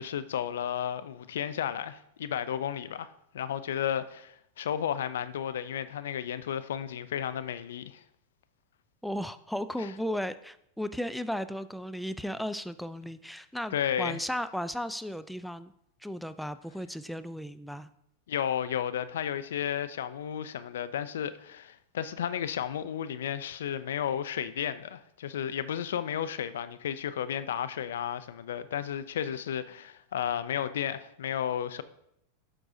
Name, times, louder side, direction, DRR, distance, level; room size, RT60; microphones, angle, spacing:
voice 1, 0.0-8.0 9.8-9.9 13.7-14.2 18.3-31.8, left 9 dB, 75° left, 0.4 m, -33 dB
voice 2, 9.0-15.7 16.0-17.9, equal, ahead, 0.3 m, -35 dB
8.8 x 6.1 x 2.7 m
hypercardioid pair, 105°, 0 cm